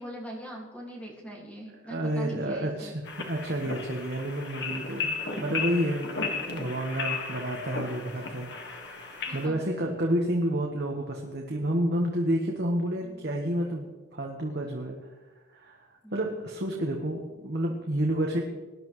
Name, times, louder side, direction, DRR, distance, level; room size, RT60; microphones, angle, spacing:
voice 1, 0.0-2.9 9.3-9.6 13.0-13.2 16.0-16.4, equal, 5° left, -2 dB, 2.1 m, -42 dB
voice 2, 1.8-6.2 6.5-15.0 15.5-18.4, right 1 dB, 55° right, 1 dB, 1.2 m, -30 dB
sound 1, 3.0-9.5, left 4 dB, 60° left, 1.7 m, -35 dB
19.0 x 11.0 x 3.2 m, 1.2 s
head